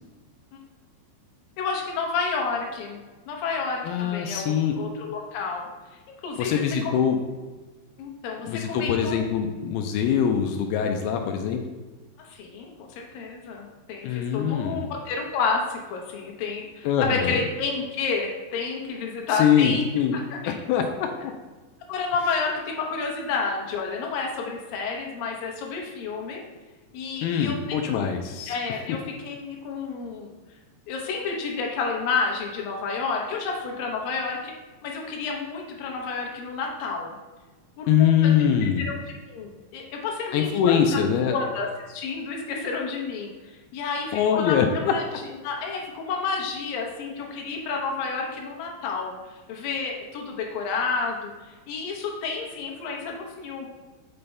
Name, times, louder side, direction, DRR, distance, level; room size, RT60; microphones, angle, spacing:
voice 1, 1.6-3.0 3.3-5.7 6.2-6.9 8.0-9.2 12.2-19.9 20.1-20.6 21.9-26.4 26.9-27.6 27.9-28.0 28.5-30.3 30.9-34.5 34.8-37.2 37.8-38.3 38.9-39.0 39.3-40.8 41.3-45.0 45.4-53.7, left 4 dB, 70° left, 0 dB, 2.3 m, -30 dB
voice 2, 3.8-4.8 6.4-7.2 8.4-11.6 14.0-14.9 16.8-17.4 19.4-20.2 20.5-21.3 27.2-28.5 37.9-38.9 40.3-41.4 44.1-44.9, left 8 dB, 90° left, 4 dB, 2.2 m, -23 dB
6.7 x 5.5 x 3.3 m, 1.3 s
omnidirectional pair, 5.1 m